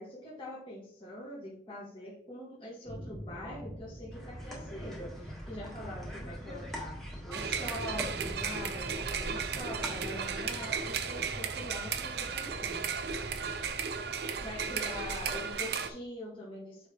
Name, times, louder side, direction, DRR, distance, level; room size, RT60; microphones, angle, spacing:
voice 1, 0.0-12.8 14.3-16.9, left 1 dB, 30° left, -6 dB, 1.6 m, -44 dB
sound 1, 2.8-15.4, equal, 80° left, 2.9 m, -46 dB
sound 2, 4.1-11.0, equal, ahead, 1.4 m, -44 dB
sound 3, 7.3-15.9, right 6 dB, 60° right, 0.6 m, -35 dB
7.4 x 4.9 x 3.0 m, 0.62 s
head